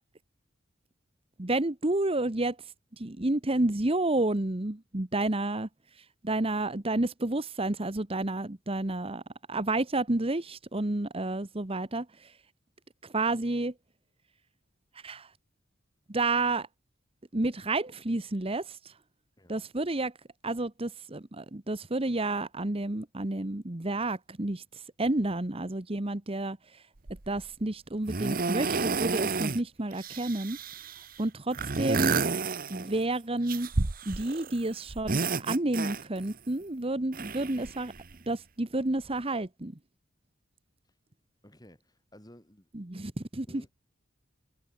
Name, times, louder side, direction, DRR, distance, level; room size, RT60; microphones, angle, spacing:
voice 1, 1.4-5.7 6.0-9.2 9.5-12.3 13.0-13.7 15.0-15.3 16.1-16.7 17.3-18.9 19.5-20.1 20.4-26.8 27.3-30.6 31.2-32.2 32.7-33.7 34.1-37.9 38.3-39.7 42.7-43.5, right 2 dB, 30° right, 1.2 m, -30 dB
voice 2, 19.4-19.7 41.4-42.7 43.5-43.7, equal, 20° left, 6.7 m, -54 dB
sound 1, 27.1-27.4 28.1-29.6 29.9-31.0 31.5-33.1 33.5-34.6 34.9-36.3 37.1-38.2 39.0-39.1, right 4 dB, 45° right, 1.1 m, -31 dB
head